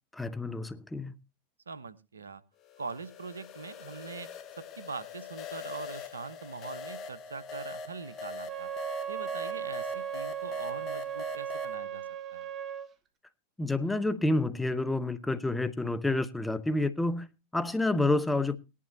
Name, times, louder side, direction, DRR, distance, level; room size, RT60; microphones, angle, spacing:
voice 1, 0.1-1.1 13.6-18.6, left 2 dB, 5° left, 1.0 m, -29 dB
voice 2, 1.7-2.4 2.8-4.3 4.6-8.7 9.1-12.5, right 4 dB, 85° right, 0.8 m, -42 dB
sound 1, 2.7-11.7, left 4 dB, 40° left, 1.2 m, -43 dB
Wind instrument woodwind instrument, 8.4-12.9, right 8 dB, 30° right, 1.6 m, -37 dB
18.0 x 11.0 x 2.8 m
figure-of-eight pair, 90°, 0 cm